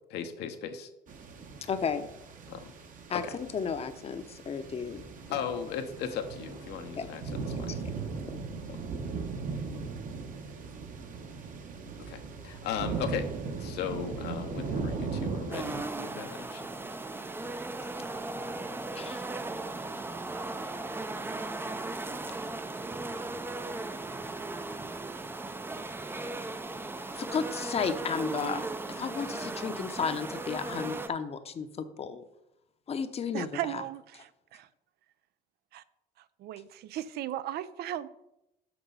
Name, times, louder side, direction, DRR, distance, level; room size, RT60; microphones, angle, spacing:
voice 1, 0.1-0.9 2.5-2.7 3.1-3.3 5.3-7.2 7.6-7.7 8.7-8.8 12.1-12.2 12.4-13.3 13.6-16.7, left 8 dB, 80° left, 1.0 m, -36 dB
sound 1, 1.1-15.8, right 4 dB, 50° right, 1.2 m, -38 dB
voice 2, 1.7-2.1 3.1-5.1 7.0-7.1 7.7-7.8 8.3-8.4 18.9-19.3 27.1-32.2 32.9-33.8, left 6 dB, 35° left, 0.8 m, -33 dB
sound 2, 15.5-31.1, right 2 dB, 15° right, 0.5 m, -37 dB
voice 3, 33.3-34.7 35.7-35.8 36.4-38.1, right 12 dB, 70° right, 0.5 m, -36 dB
6.0 x 6.0 x 5.5 m
cardioid pair, 110°, 17 cm